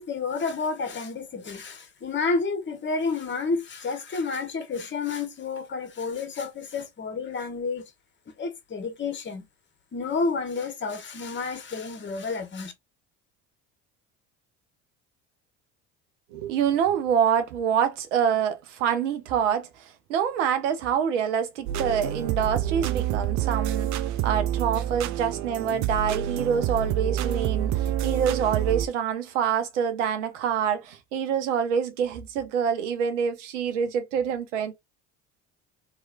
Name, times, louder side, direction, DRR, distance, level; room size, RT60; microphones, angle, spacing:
voice 1, 0.0-7.9 8.4-9.4 9.9-12.7, left 4 dB, 30° left, 1.1 m, -30 dB
voice 2, 16.3-34.7, right 8 dB, 85° right, 0.8 m, -26 dB
sound 1, 21.7-28.9, right 10 dB, 55° right, 0.5 m, -27 dB
3.0 x 3.0 x 2.4 m
hypercardioid pair, 70°, 35 cm